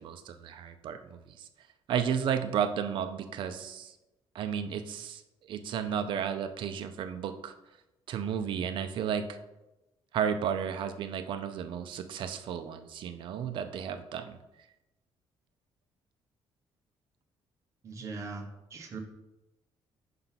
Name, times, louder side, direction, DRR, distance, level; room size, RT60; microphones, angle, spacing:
voice 1, 0.0-1.5 1.9-3.9 4.3-5.2 5.5-7.5 8.1-9.4 10.1-14.4, right 8 dB, 60° right, 9 dB, 0.5 m, -33 dB
voice 2, 17.8-19.0, right 4 dB, 30° right, 1 dB, 1.0 m, -40 dB
5.8 x 3.8 x 5.7 m, 0.97 s
cardioid pair, 170°, 10 cm